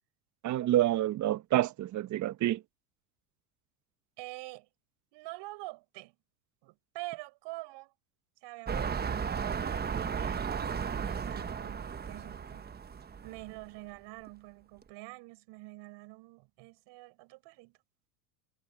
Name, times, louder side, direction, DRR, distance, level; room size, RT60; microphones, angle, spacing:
voice 1, 0.4-2.6, right 13 dB, 35° right, 0.9 m, -28 dB
voice 2, 4.2-4.7 5.1-6.2 6.6-7.9 8.4-12.7 13.2-17.8, right 22 dB, 60° right, 5.7 m, -46 dB
sound 1, 8.7-13.7 14.3-14.4, right 6 dB, 20° right, 1.2 m, -35 dB
hypercardioid pair, 95°, 48 cm